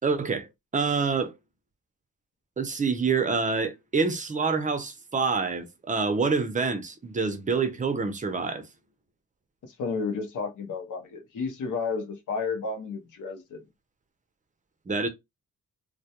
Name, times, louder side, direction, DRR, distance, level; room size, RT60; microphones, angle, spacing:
voice 1, 0.0-0.5 0.7-1.3 2.6-8.7 14.9-15.1, right 4 dB, 25° right, 0.5 m, -26 dB
voice 2, 9.6-13.6, left 4 dB, 65° left, 0.7 m, -32 dB
2.2 x 2.1 x 2.8 m
cardioid pair, 80°, 33 cm